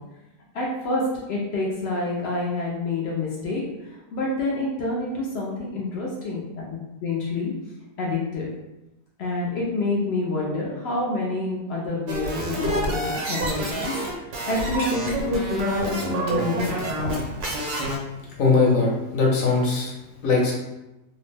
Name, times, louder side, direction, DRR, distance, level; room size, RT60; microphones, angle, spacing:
voice 1, 0.5-1.0 1.3-6.4 7.0-7.5 8.0-8.5 9.2-13.9 14.3-16.8, left 2 dB, 85° left, -4 dB, 0.5 m, -27 dB
sound 1, 12.1-18.0, right 1 dB, 75° right, 1.2 m, -28 dB
voice 2, 18.4-19.9 20.2-20.5, left 4 dB, 65° left, -3 dB, 1.0 m, -20 dB
2.8 x 2.0 x 3.2 m, 0.96 s
omnidirectional pair, 1.7 m